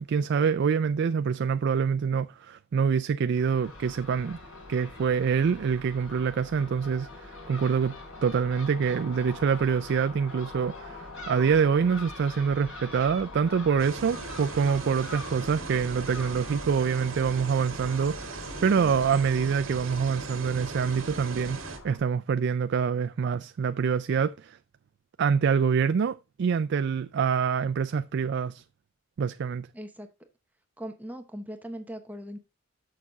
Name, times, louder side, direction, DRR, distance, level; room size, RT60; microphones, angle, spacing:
voice 1, 0.0-4.4 4.7-8.0 8.2-24.6 25.2-28.6 29.2-29.7, right 6 dB, 55° right, 0.3 m, -26 dB
Crow / Gull seagull, 3.3-22.0, left 2 dB, 90° left, 4.2 m, -44 dB
sound 1, 13.8-21.8, right 3 dB, 75° right, 1.7 m, -39 dB
voice 2, 29.7-30.3 30.8-32.4, equal, 10° right, 0.8 m, -40 dB
7.2 x 6.6 x 3.8 m
head